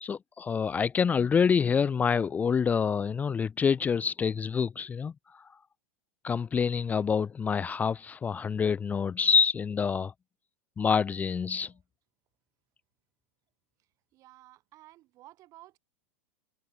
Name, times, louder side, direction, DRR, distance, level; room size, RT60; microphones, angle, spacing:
voice 1, 0.0-5.5 6.2-10.1 10.8-11.7, left 6 dB, 20° left, 0.5 m, -27 dB
voice 2, 14.1-15.8, right 16 dB, 45° right, 3.8 m, -54 dB
hypercardioid pair, 95°, 8 cm